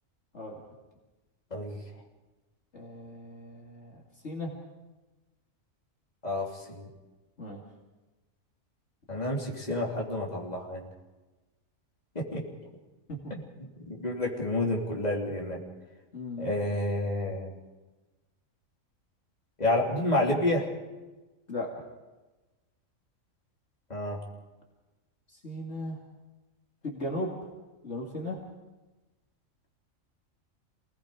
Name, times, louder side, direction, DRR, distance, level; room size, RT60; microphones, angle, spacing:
voice 1, 1.5-1.8 6.2-6.9 9.1-10.9 12.1-12.5 13.3-13.4 13.8-15.6 16.4-17.5 19.6-20.7 23.9-24.2, left 1 dB, 30° left, -2 dB, 3.3 m, -29 dB
voice 2, 2.7-4.6 7.4-7.6 13.1-13.3 16.1-16.5 21.5-21.7 25.3-26.0 26.8-27.5 27.8-28.4, left 1 dB, 55° left, -1 dB, 2.7 m, -37 dB
28.5 x 19.5 x 5.1 m, 1.2 s
omnidirectional pair, 1.4 m